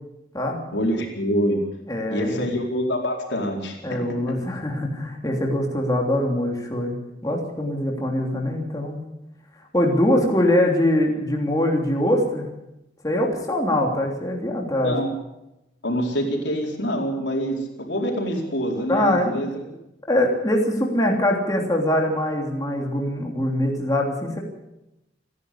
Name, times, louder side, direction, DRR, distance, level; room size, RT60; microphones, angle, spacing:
voice 1, 0.7-1.6 2.1-4.0 10.1-10.3 14.8-15.1 15.8-19.6, equal, 85° left, 1 dB, 4.6 m, -25 dB
voice 2, 1.9-2.4 3.8-6.9 7.2-9.0 9.7-12.4 13.0-15.0 18.9-19.4 20.1-24.4, left 1 dB, 20° left, 0 dB, 3.2 m, -23 dB
28.5 x 10.5 x 8.5 m, 0.93 s
head